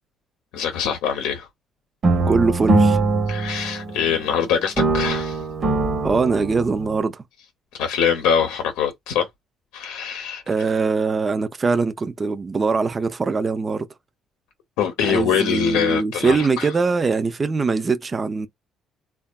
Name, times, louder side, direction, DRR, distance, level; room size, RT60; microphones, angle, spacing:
voice 1, 0.5-1.5 3.3-5.4 7.7-9.3 9.7-10.4 14.8-16.7, left 7 dB, 90° left, 0.6 m, -23 dB
sound 1, 2.0-4.4 4.8-7.0, right 3 dB, 50° right, 0.9 m, -21 dB
voice 2, 2.3-3.0 6.0-7.2 10.5-13.9 15.0-18.5, right 4 dB, 35° right, 0.4 m, -22 dB
3.3 x 2.3 x 2.2 m
cardioid pair, 80°, 0 cm